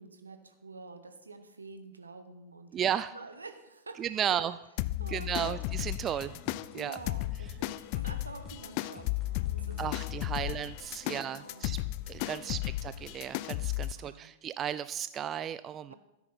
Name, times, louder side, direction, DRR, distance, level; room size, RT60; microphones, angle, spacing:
voice 1, 0.0-2.8 3.1-4.4 5.0-5.6 6.7-9.8 10.4-10.6 11.1-11.9 12.2-12.7 13.8-14.3 15.9-16.0, right 3 dB, 80° right, 8 dB, 1.1 m, -48 dB
voice 2, 2.7-3.1 4.0-4.5 5.1-6.4 6.7-7.0 9.8-11.8 12.1-15.9, right 9 dB, 30° right, 14 dB, 0.3 m, -34 dB
sound 1, 4.8-13.9, left 17 dB, 45° left, 0.4 m, -35 dB
sound 2, 5.0-10.3, left 3 dB, 20° left, 2.0 m, -50 dB
13.0 x 10.5 x 4.1 m, 0.94 s
figure-of-eight pair, 90°, 0 cm